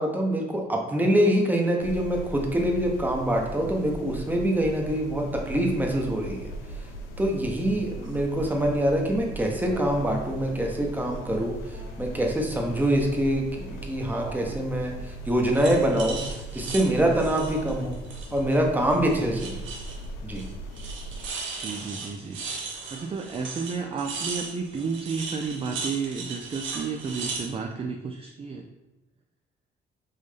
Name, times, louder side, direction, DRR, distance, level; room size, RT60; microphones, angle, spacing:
voice 1, 0.0-6.5 7.2-18.0 18.3-19.6 20.2-20.4, right 1 dB, 10° right, 1 dB, 0.8 m, -25 dB
sound 1, 1.8-21.3, right 2 dB, 80° left, 0.6 m, -38 dB
sound 2, 7.9-8.1 9.6-9.9 10.2-11.2 11.6-12.6 14.2-14.7 15.5-18.6 18.9-20.0 20.3-20.5 20.7-27.5, right 4 dB, 75° right, 0.9 m, -38 dB
voice 2, 21.6-28.6, right 5 dB, 30° right, 3 dB, 0.4 m, -32 dB
5.4 x 2.6 x 3.3 m, 1.0 s
cardioid pair, 90°, 20 cm